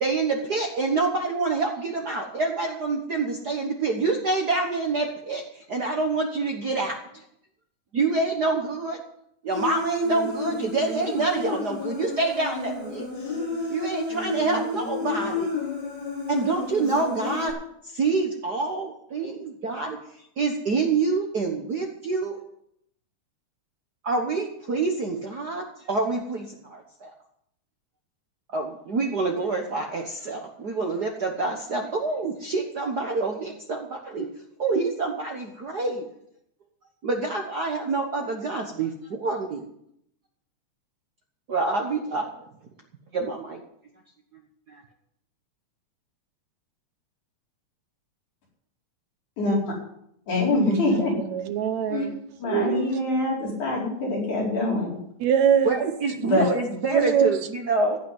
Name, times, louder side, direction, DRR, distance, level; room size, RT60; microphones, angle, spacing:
voice 1, 0.0-7.0 7.9-9.0 9.4-13.1 13.7-15.5 16.3-17.5 17.8-20.0 20.4-22.4 24.0-27.1 28.5-34.3 34.6-36.0 37.0-39.7 41.5-42.3 43.1-43.6 44.7-44.8 55.6-58.0, right 3 dB, 50° right, 1.2 m, -27 dB
Human voice, 9.5-17.5, left 3 dB, 40° left, 4.6 m, -31 dB
voice 2, 50.3-51.1 51.9-52.1 52.4-54.9 56.2-56.4, left 2 dB, 80° left, 6.0 m, -24 dB
voice 3, 50.8-52.1 52.4-52.8 55.2-55.8 56.9-57.4, right 8 dB, 75° right, 2.1 m, -23 dB
15.5 x 5.9 x 9.7 m
omnidirectional pair, 3.4 m